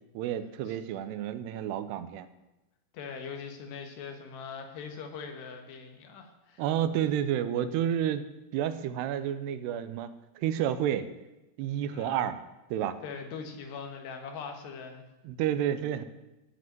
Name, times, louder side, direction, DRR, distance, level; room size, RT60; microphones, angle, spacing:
voice 1, 0.1-2.3 6.6-8.3 8.5-10.1 10.4-11.1 11.6-12.4 12.7-13.0 15.2-16.0, right 10 dB, 90° right, 11 dB, 2.9 m, -30 dB
voice 2, 2.9-6.6 11.9-12.3 13.0-15.0, left 5 dB, 85° left, 4 dB, 3.7 m, -41 dB
15.5 x 5.2 x 9.4 m, 0.99 s
omnidirectional pair, 4.7 m